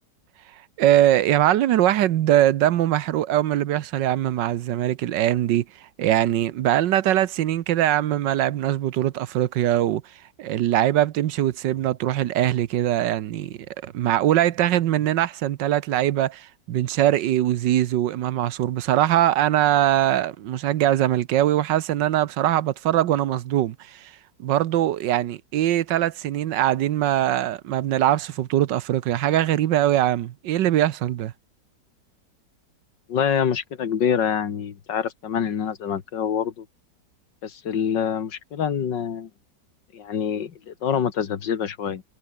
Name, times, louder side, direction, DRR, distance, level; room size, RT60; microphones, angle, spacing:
voice 1, 0.8-5.6 6.0-10.0 10.4-24.1 24.4-31.3, right 12 dB, 85° right, 1.5 m, -22 dB
voice 2, 33.1-36.7 37.4-39.3 39.9-42.0, left 8 dB, 80° left, 2.2 m, -26 dB
omnidirectional pair, 1.9 m